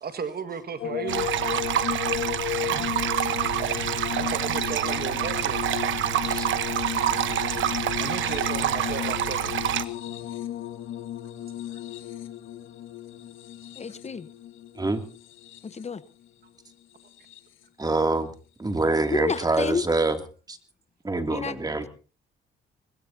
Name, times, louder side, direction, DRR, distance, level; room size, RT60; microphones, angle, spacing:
voice 1, 0.0-1.3 4.2-5.6 8.0-9.5 11.7-11.8, right 6 dB, 50° right, 10 dB, 1.8 m, -35 dB
sound 1, 0.8-16.0 16.9-17.6 19.0-19.2, left 12 dB, 80° left, 1.5 m, -34 dB
sound 2, 1.1-9.8, right 11 dB, 75° right, 1.1 m, -27 dB
voice 2, 13.8-14.3 15.6-16.0 19.1-19.8 21.3-21.9, left 5 dB, 35° left, 14 dB, 1.0 m, -30 dB
voice 3, 17.8-18.3 18.6-20.2 20.5-20.6 21.0-21.9, right 2 dB, 20° right, 6 dB, 2.6 m, -25 dB
21.5 x 21.0 x 2.8 m, 0.37 s
cardioid pair, 90°, 20 cm